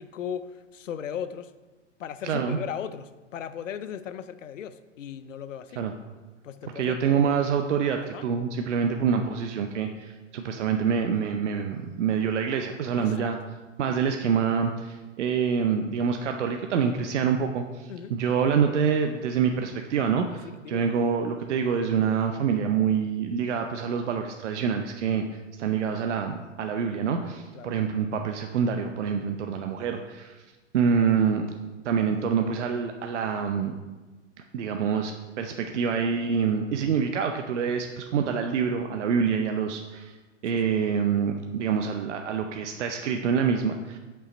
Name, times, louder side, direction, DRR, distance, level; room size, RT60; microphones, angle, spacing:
voice 1, 0.0-1.5 2.0-5.9 6.4-7.4 8.1-8.2 13.0-13.2 17.9-18.1 20.4-20.9 27.5-27.8 31.0-31.1 40.5-40.7, left 8 dB, 80° left, 0.6 m, -37 dB
voice 2, 2.2-2.6 5.8-5.9 6.8-13.4 13.8-25.2 25.6-30.4 30.7-31.5 31.8-33.7 34.5-40.2 40.4-44.0, right 6 dB, 70° right, 0.7 m, -26 dB
7.5 x 5.7 x 4.2 m
hypercardioid pair, 115°, 38 cm